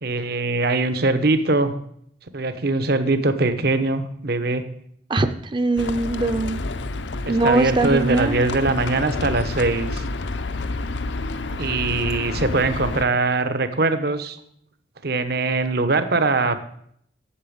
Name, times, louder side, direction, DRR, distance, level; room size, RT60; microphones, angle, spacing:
voice 1, 0.0-1.8 2.3-4.6 7.2-10.0 11.6-14.4 15.0-16.6, right 3 dB, 60° right, 10 dB, 1.0 m, -22 dB
voice 2, 5.1-6.6 7.3-8.4, right 2 dB, 25° right, 11 dB, 0.6 m, -22 dB
Livestock farm animals working animals, 5.8-13.0, left 3 dB, 80° left, 0.7 m, -29 dB
8.6 x 7.1 x 8.6 m, 0.68 s
head